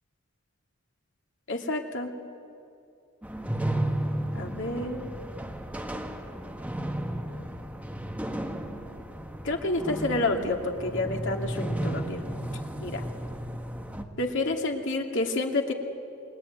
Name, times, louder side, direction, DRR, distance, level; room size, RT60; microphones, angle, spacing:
voice 1, 1.5-2.1 4.3-5.1 9.4-12.2 12.8-13.0 14.2-15.7, left 2 dB, 65° left, 2 dB, 2.6 m, -29 dB
sound 1, 3.2-14.0, right 1 dB, 5° right, 1.6 m, -33 dB
28.5 x 21.0 x 9.4 m, 2.7 s
head